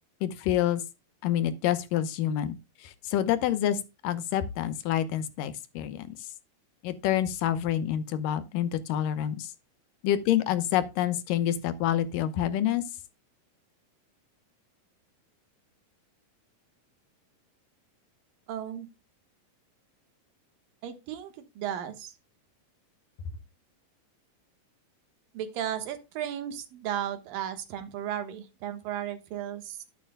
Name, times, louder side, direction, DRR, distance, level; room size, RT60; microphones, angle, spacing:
voice 1, 0.2-0.8 1.2-6.3 6.8-9.5 10.0-12.8, left 11 dB, 85° left, 2.5 m, -28 dB
voice 2, 18.5-18.9 20.8-22.1 25.3-29.8, right 10 dB, 85° right, 3.0 m, -35 dB
12.5 x 9.2 x 2.2 m
omnidirectional pair, 3.9 m